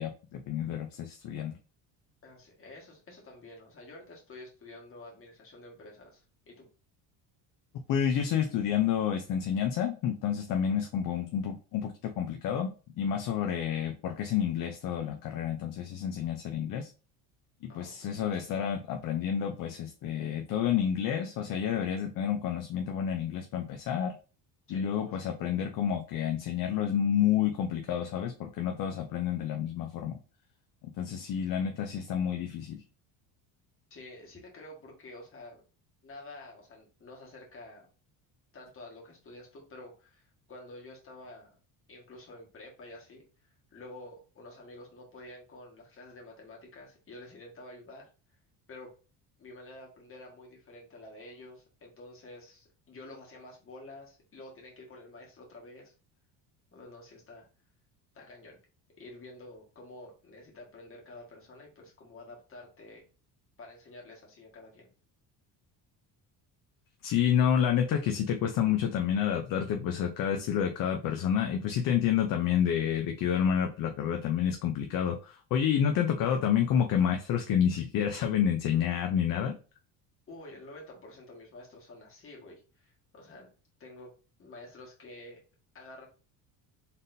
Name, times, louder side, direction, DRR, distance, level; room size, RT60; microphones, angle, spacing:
voice 1, 0.0-1.6 7.9-12.7 13.0-16.9 17.7-24.1 24.7-30.2 31.0-32.8 67.0-79.6, left 9 dB, 50° left, 4 dB, 0.6 m, -29 dB
voice 2, 2.2-6.7 17.7-18.2 24.7-25.2 33.9-35.6 36.0-37.9 38.5-41.6 41.9-43.2 43.7-48.1 48.7-48.9 49.4-55.9 56.7-57.5 58.1-58.6 59.0-63.0 63.6-64.9 80.3-83.5 83.8-84.1 84.4-85.4 85.7-86.1, left 2 dB, 30° left, -1 dB, 1.6 m, -49 dB
4.1 x 3.5 x 2.6 m, 0.35 s
cardioid pair, 135°, 44 cm